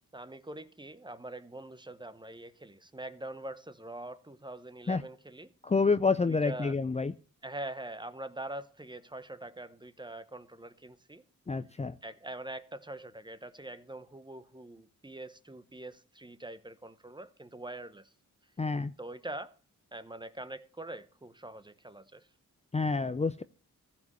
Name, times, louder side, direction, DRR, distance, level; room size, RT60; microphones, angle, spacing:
voice 1, 0.1-5.5 6.2-6.8 7.4-11.2 12.0-18.1 19.0-19.6 19.9-22.3, right 1 dB, 15° right, 1.0 m, -43 dB
voice 2, 5.6-7.1 11.5-12.0 18.6-18.9 22.7-23.4, left 4 dB, 20° left, 0.5 m, -28 dB
15.0 x 5.3 x 8.3 m
cardioid pair, 70°, 31 cm